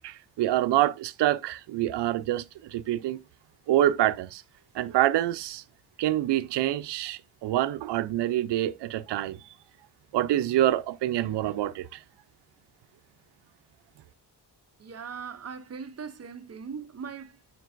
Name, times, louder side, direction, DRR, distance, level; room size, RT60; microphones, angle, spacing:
voice 1, 0.0-3.2 3.7-4.4 4.7-5.6 6.0-9.5 10.1-12.0, right 13 dB, 90° right, 0.6 m, -26 dB
voice 2, 14.8-17.6, right 6 dB, 40° right, 0.6 m, -40 dB
7.5 x 5.8 x 2.5 m
cardioid pair, 110°, 40 cm